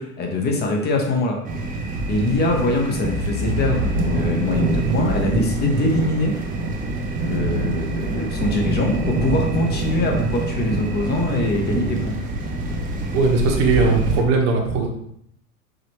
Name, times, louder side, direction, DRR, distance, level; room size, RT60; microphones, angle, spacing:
voice 1, 0.0-1.4 2.1-6.3 7.2-12.2, left 2 dB, 20° left, 2 dB, 0.8 m, -23 dB
sound 1, 1.4-14.2, right 2 dB, 20° right, 0.6 m, -25 dB
voice 2, 13.1-14.9, right 4 dB, 50° right, 1 dB, 1.1 m, -19 dB
4.9 x 3.0 x 2.9 m, 0.74 s
hypercardioid pair, 95°, 44 cm